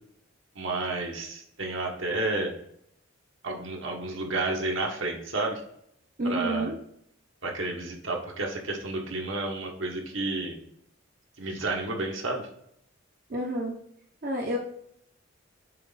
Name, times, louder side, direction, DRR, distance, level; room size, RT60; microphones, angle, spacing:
voice 1, 0.5-2.5 3.4-5.6 6.2-6.7 7.4-10.6 11.4-12.4, right 2 dB, 65° right, 1 dB, 1.3 m, -31 dB
voice 2, 6.2-6.8 13.3-13.8 14.2-14.6, right 1 dB, 45° right, -1 dB, 0.8 m, -29 dB
7.4 x 3.2 x 4.0 m, 0.70 s
head